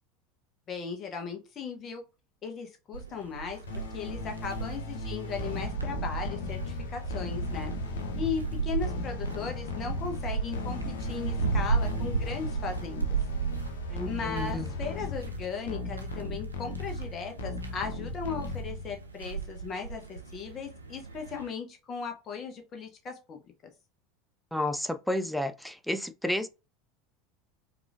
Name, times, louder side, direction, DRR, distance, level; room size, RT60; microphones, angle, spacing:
voice 1, 0.7-2.0 2.4-3.6 3.9-7.7 8.1-13.0 14.0-23.7, left 6 dB, 35° left, 0.9 m, -37 dB
sound 1, 2.9-21.5, right 5 dB, 80° right, 0.5 m, -35 dB
sound 2, 3.7-19.1, left 3 dB, 65° left, 0.6 m, -37 dB
voice 2, 13.9-14.7 24.5-26.5, left 1 dB, ahead, 0.3 m, -31 dB
4.6 x 2.5 x 2.4 m
figure-of-eight pair, 75°, 0 cm